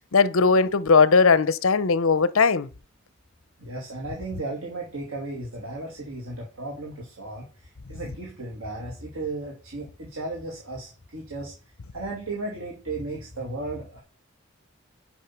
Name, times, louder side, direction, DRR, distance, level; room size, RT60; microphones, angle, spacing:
voice 1, 0.1-2.7, left 4 dB, 70° left, 0.7 m, -19 dB
voice 2, 3.6-11.5 11.9-14.0, right 2 dB, 85° right, 2.5 m, -35 dB
10.0 x 5.6 x 5.9 m
head